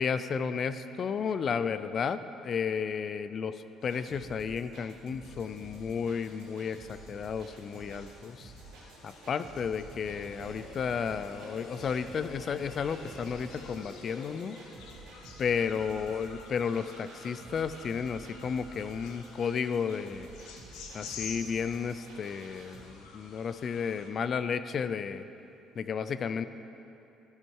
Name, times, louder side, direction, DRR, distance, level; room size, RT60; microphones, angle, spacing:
voice 1, 0.0-8.5 9.0-14.6 15.4-20.3 20.9-25.3 25.8-26.5, left 6 dB, 40° left, 12 dB, 0.3 m, -33 dB
sound 1, 3.8-22.8, right 3 dB, 85° right, 1.9 m, -51 dB
sound 2, 5.2-24.1, left 5 dB, 90° left, 1.0 m, -51 dB
Train, 8.0-17.0 17.4-17.5, left 3 dB, 65° left, 1.4 m, -50 dB
12.5 x 5.6 x 4.5 m, 2.8 s
cardioid pair, 125°, 0 cm